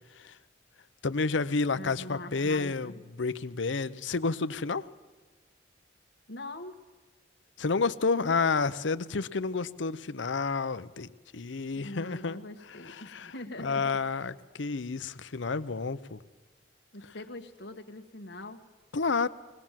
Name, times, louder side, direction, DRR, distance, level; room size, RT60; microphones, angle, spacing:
voice 1, 1.0-2.9 3.2-4.9 7.6-12.4 12.9-13.3 13.6-16.2 18.9-19.3, left 4 dB, 80° left, 15 dB, 0.7 m, -30 dB
voice 2, 1.7-3.0 6.3-6.7 8.2-8.4 11.7-14.0 16.9-18.6, left 2 dB, 65° left, 4 dB, 1.6 m, -43 dB
21.5 x 19.5 x 7.5 m, 1.3 s
head